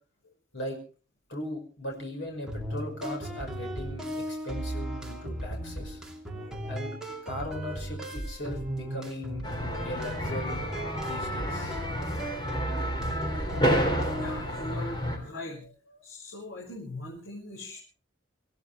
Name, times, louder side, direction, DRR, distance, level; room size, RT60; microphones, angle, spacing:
voice 1, 1.3-6.0 6.7-6.9 7.2-9.5 9.8-10.7 11.0-11.8 15.9-16.0, left 1 dB, 65° left, 1 dB, 5.3 m, -38 dB
sound 1, 2.5-14.4, right 1 dB, 5° right, 2.6 m, -36 dB
voice 2, 6.3-6.7 14.2-15.7 16.0-17.8, left 2 dB, 85° left, -4 dB, 5.8 m, -41 dB
sound 2, 9.4-15.2, equal, 20° left, 3.5 m, -30 dB
26.5 x 15.5 x 3.3 m, 0.37 s
head